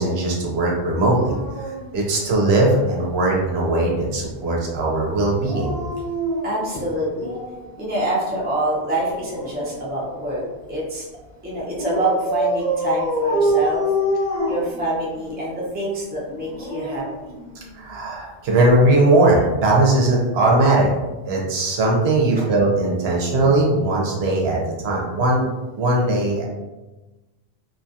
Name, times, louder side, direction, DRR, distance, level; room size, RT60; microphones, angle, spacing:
voice 1, 0.0-1.4 1.9-5.8 17.7-20.9 21.3-25.4 25.8-26.4, right 2 dB, 70° right, -2 dB, 0.9 m, -19 dB
Dog, 1.0-2.8 5.3-7.7 8.9-10.6 11.8-15.3 16.3-17.9 19.2-19.4, equal, 40° right, 0.8 m, -27 dB
voice 2, 6.4-7.3 7.8-10.4 10.7-11.0 11.4-13.8 14.5-17.3 22.3-22.5, right 1 dB, 10° right, -6 dB, 0.5 m, -26 dB
2.6 x 2.3 x 2.6 m, 1.1 s
omnidirectional pair, 1.1 m